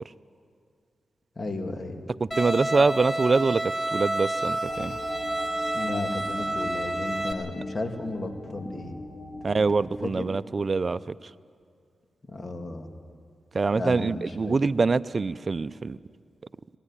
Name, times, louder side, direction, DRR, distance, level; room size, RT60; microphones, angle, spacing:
voice 1, 1.4-2.0 5.7-8.9 12.3-12.9 13.7-14.6, left 2 dB, 45° left, 4 dB, 2.5 m, -34 dB
voice 2, 2.2-3.6 3.9-4.9 9.4-11.1 13.5-16.0, right 4 dB, 50° right, 15 dB, 0.5 m, -24 dB
Bowed string instrument, 2.3-7.3, right 1 dB, 20° left, 2.7 m, -29 dB
sound 1, 4.6-9.9, left 2 dB, 75° left, 6.3 m, -40 dB
21.0 x 15.0 x 9.9 m, 2.3 s
cardioid pair, 50°, 0 cm